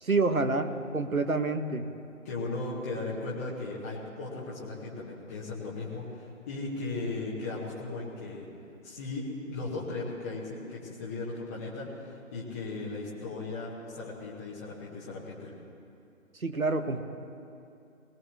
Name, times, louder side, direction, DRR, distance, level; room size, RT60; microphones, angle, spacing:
voice 1, 0.0-1.9 16.4-17.0, right 3 dB, 85° right, 8 dB, 1.4 m, -28 dB
voice 2, 2.2-8.5 8.8-15.5, left 3 dB, 10° left, -7 dB, 1.0 m, -37 dB
20.5 x 18.0 x 3.4 m, 2.6 s
figure-of-eight pair, 145°, 41 cm